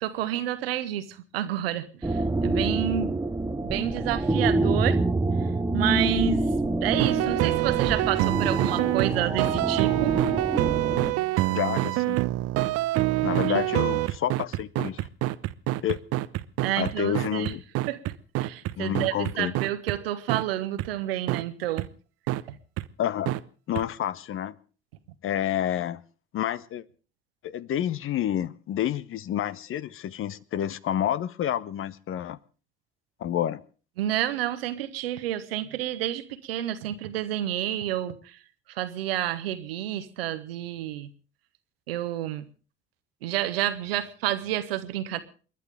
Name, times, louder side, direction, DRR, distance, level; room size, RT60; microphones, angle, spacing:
voice 1, 0.0-3.2 3.6-5.0 5.7-6.5 6.8-10.1 13.5-13.6 16.6-17.5 17.9-18.0 18.4-21.9 22.5-22.6 34.0-38.4 38.7-41.1 41.9-42.4 43.2-45.2, right 13 dB, 70° right, 12 dB, 1.3 m, -29 dB
sound 1, 2.0-11.1, right 2 dB, 10° right, 1.0 m, -27 dB
sound 2, 6.9-20.0 20.3-20.4 20.8-20.9 21.3-21.4 21.8-21.9 22.3-22.4 22.8-22.9 23.3-23.4 23.8-23.9, right 18 dB, 50° right, 0.8 m, -26 dB
voice 2, 11.5-12.2 13.2-15.1 15.8-16.0 16.8-17.6 18.8-19.5 23.0-23.3 23.7-24.6 25.2-26.0 26.3-26.8 27.4-32.4 33.2-33.6, left 11 dB, 45° left, 18 dB, 0.9 m, -29 dB
28.5 x 11.0 x 3.5 m, 0.39 s
figure-of-eight pair, 55°, 30 cm